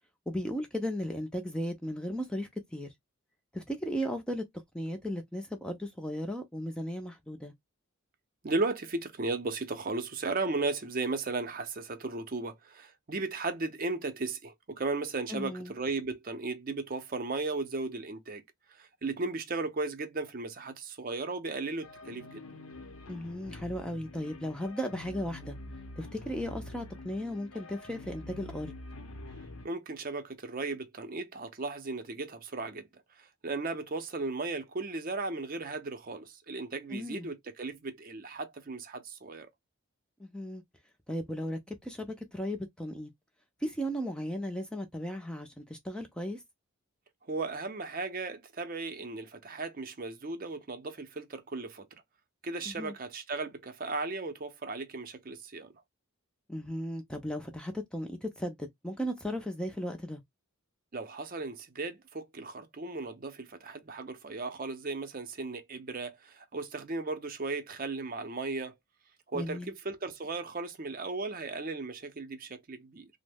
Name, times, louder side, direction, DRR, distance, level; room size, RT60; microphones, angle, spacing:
voice 1, 0.3-2.9 3.5-4.4 4.7-7.5 15.3-15.7 23.1-25.6 26.0-28.7 36.9-37.3 40.2-40.6 41.1-43.1 43.6-46.4 52.7-52.9 56.5-60.2 69.3-69.7, equal, 5° left, 0.4 m, -36 dB
voice 2, 8.4-18.4 18.7-22.4 29.6-32.9 33.2-39.5 47.3-51.9 52.4-55.7 60.9-68.7 69.3-73.1, right 3 dB, 40° right, 0.6 m, -36 dB
sound 1, 21.8-29.7, left 2 dB, 75° left, 0.7 m, -46 dB
3.0 x 2.0 x 3.3 m
head